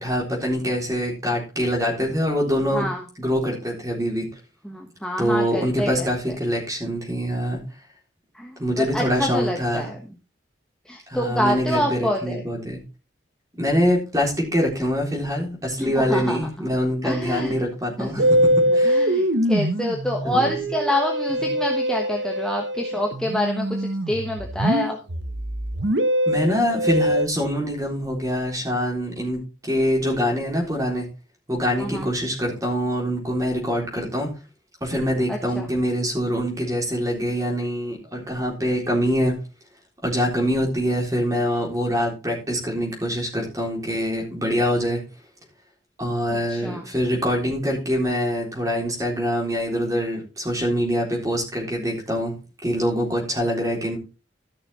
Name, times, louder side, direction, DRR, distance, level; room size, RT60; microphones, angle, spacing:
voice 1, 0.0-2.9 3.2-4.3 5.2-7.6 8.6-9.9 11.1-12.8 13.6-18.4 18.7-19.0 20.2-20.6 21.4-21.5 26.3-31.1 31.5-34.3 34.8-39.3 40.0-45.0 46.0-52.4 52.6-54.0, equal, 20° right, -1 dB, 3.7 m, -24 dB
voice 2, 4.6-6.1 8.3-10.0 10.8-12.4 15.8-16.7 17.0-17.6 18.0-18.3 18.7-25.0 31.8-32.1 35.3-35.7 46.3-46.9, left 1 dB, 5° left, 0 dB, 1.2 m, -27 dB
Musical instrument, 18.2-27.3, equal, 70° right, 1.2 m, -23 dB
13.5 x 6.3 x 4.2 m, 0.31 s
head